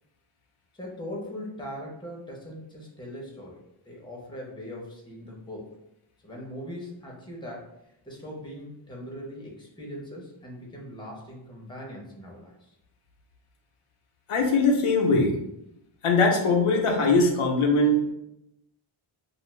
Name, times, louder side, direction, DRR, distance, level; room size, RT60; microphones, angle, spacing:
voice 1, 0.7-3.6 3.9-5.7 6.2-7.7 8.0-12.7, equal, 10° left, -2 dB, 0.8 m, -40 dB
voice 2, 14.3-15.4 16.0-18.1, left 2 dB, 80° left, 1 dB, 0.7 m, -21 dB
2.6 x 2.4 x 3.1 m, 0.83 s
wide cardioid pair, 85°, 50 cm